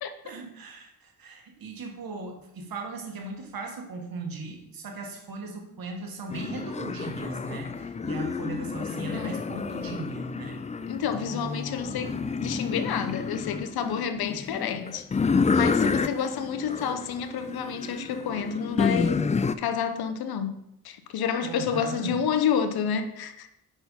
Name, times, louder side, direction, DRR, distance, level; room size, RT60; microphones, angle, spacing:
voice 1, 0.2-10.6 21.4-22.2, right 3 dB, 70° right, 1.6 m, -38 dB
sound 1, 6.3-19.5, left 5 dB, 20° left, 0.4 m, -29 dB
voice 2, 8.9-9.4 10.9-15.1 15.5-19.3 19.6-20.6 20.8-23.5, left 7 dB, 85° left, 0.7 m, -29 dB
5.8 x 4.4 x 5.4 m
cardioid pair, 55°, 36 cm